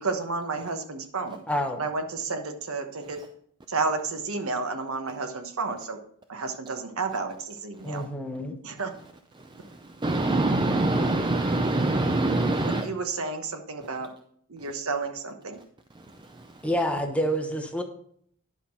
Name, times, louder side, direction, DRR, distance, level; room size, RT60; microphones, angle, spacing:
voice 1, 0.0-1.4 1.8-3.2 3.7-6.0 6.3-8.0 8.6-8.9 12.8-14.1 14.5-15.6, right 4 dB, 70° right, 6 dB, 1.0 m, -31 dB
voice 2, 1.5-1.8 7.8-8.6 16.6-17.8, equal, 5° left, 4 dB, 0.9 m, -28 dB
voice 3, 9.4-12.9 16.0-16.6, right 2 dB, 20° right, 6 dB, 0.4 m, -25 dB
10.0 x 5.6 x 4.3 m, 0.65 s
head